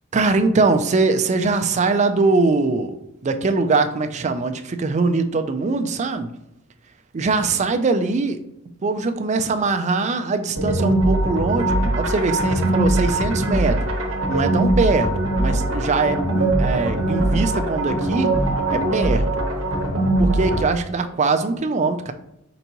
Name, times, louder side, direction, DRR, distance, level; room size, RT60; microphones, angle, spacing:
voice 1, 0.1-3.0 3.2-6.3 7.1-8.4 8.8-13.8 14.3-15.1 15.4-18.3 18.7-19.4 20.2-22.1, right 3 dB, 35° right, 8 dB, 0.4 m, -22 dB
sound 1, 10.6-20.6, right 1 dB, 75° right, 0.9 m, -21 dB
4.5 x 4.0 x 2.9 m, 0.81 s
head